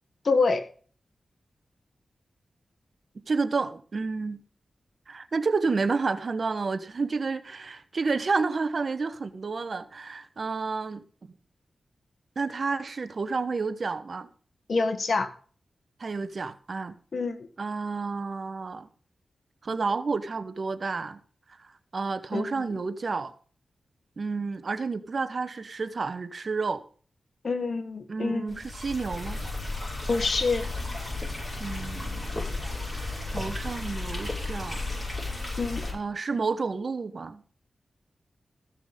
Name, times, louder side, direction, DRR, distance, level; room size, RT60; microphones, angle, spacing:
voice 1, 0.2-0.6 14.7-15.3 17.1-17.4 22.3-22.7 27.4-28.6 30.1-30.6 35.6-35.8, left 4 dB, 65° left, 1.6 m, -26 dB
voice 2, 3.1-4.4 5.1-11.0 12.4-14.3 16.0-17.0 17.6-18.9 19.6-21.2 21.6-23.3 24.2-26.8 28.1-29.4 31.6-32.3 33.3-34.8 35.9-37.4, right 4 dB, 60° right, 1.1 m, -30 dB
sound 1, 28.5-35.9, left 2 dB, 20° left, 6.5 m, -33 dB
15.0 x 6.1 x 5.2 m
cardioid pair, 45°, 0 cm